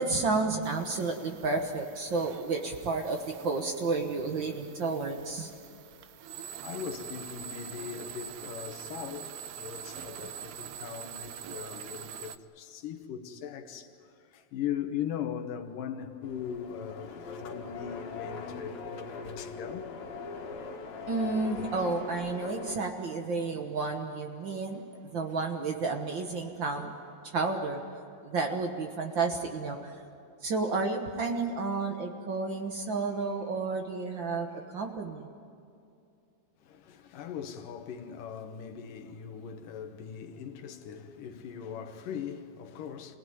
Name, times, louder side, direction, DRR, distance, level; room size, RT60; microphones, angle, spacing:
voice 1, 0.0-5.5 21.1-24.8 25.1-26.9 27.2-27.8 28.2-29.9 30.4-34.5 34.7-35.3, right 3 dB, 65° right, 1.1 m, -31 dB
sound 1, 0.6-12.4, right 9 dB, 80° right, 1.6 m, -45 dB
voice 2, 6.6-19.9 36.6-43.2, left 8 dB, 75° left, 2.8 m, -39 dB
sound 2, 16.2-22.8, left 4 dB, 90° left, 3.8 m, -40 dB
27.0 x 18.0 x 9.6 m
omnidirectional pair, 4.0 m